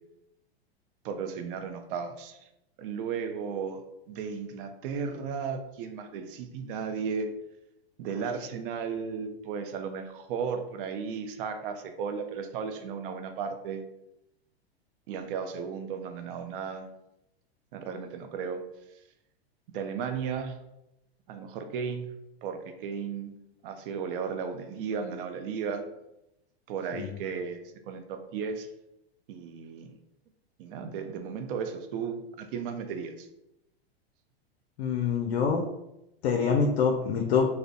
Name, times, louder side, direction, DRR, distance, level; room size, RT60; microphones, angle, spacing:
voice 1, 1.0-2.4 2.8-7.3 8.0-13.8 15.1-16.9 17.7-18.6 19.7-20.6 21.3-22.1 22.4-23.3 23.6-25.8 26.7-28.7 29.3-30.0 30.6-33.3, right 6 dB, 55° right, 7 dB, 0.4 m, -35 dB
voice 2, 34.8-35.7 36.2-37.5, left 6 dB, 75° left, 2 dB, 0.5 m, -25 dB
2.6 x 2.0 x 2.5 m, 0.87 s
hypercardioid pair, 115°, 31 cm